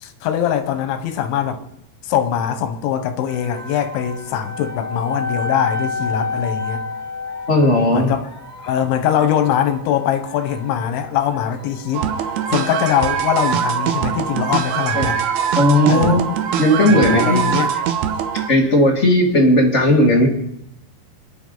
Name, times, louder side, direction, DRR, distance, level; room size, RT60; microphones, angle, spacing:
voice 1, 0.0-1.6 2.0-6.8 7.9-8.3 8.6-15.2 15.9-16.2 16.9-17.7, left 9 dB, 90° left, 3.6 m, -22 dB
sound 1, 3.3-14.2, left 4 dB, 15° left, 1.5 m, -31 dB
voice 2, 7.5-8.1 14.9-15.1 15.5-16.2 16.6-17.6 18.3-20.3, left 1 dB, 35° left, 1.1 m, -15 dB
sound 2, 11.9-18.5, right 8 dB, 70° right, 2.9 m, -22 dB
27.5 x 11.0 x 4.0 m
omnidirectional pair, 5.1 m